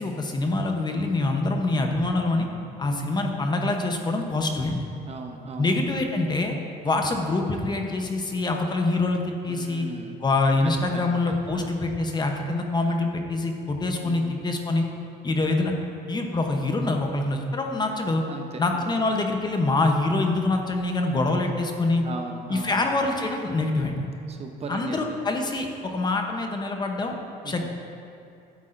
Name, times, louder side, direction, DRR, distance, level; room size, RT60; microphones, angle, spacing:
voice 1, 0.0-2.5 2.8-4.8 5.6-6.6 6.8-9.9 10.2-14.8 15.2-15.7 16.1-18.2 18.6-22.1 22.5-24.0 24.7-27.1 27.4-27.7, left 2 dB, 25° left, 3 dB, 0.8 m, -25 dB
voice 2, 2.9-3.2 5.1-5.7 6.8-6.9 9.5-10.2 10.6-11.2 11.5-11.7 14.0-14.4 18.3-18.9 22.0-22.8 24.3-25.2 27.4-27.7, right 4 dB, 35° right, 4 dB, 0.8 m, -38 dB
12.5 x 8.4 x 2.6 m, 2.6 s
cardioid pair, 110°, 17 cm